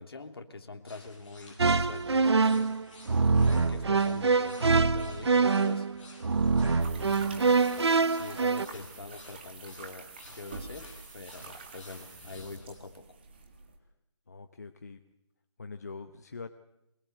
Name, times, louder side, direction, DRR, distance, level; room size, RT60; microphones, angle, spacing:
voice 1, 0.0-2.8 3.5-5.9 6.8-7.7 8.1-13.0, left 3 dB, 55° left, 5 dB, 3.0 m, -44 dB
sound 1, 0.9-12.8, left 3 dB, 15° left, 6.4 m, -54 dB
sound 2, 1.6-8.7, right 4 dB, 60° right, 0.9 m, -25 dB
sound 3, 6.8-13.8, right 4 dB, 20° right, 1.9 m, -47 dB
voice 2, 14.3-15.0 15.6-16.5, left 4 dB, 35° left, 8 dB, 0.9 m, -43 dB
24.0 x 21.5 x 8.0 m, 0.87 s
figure-of-eight pair, 175°, 15 cm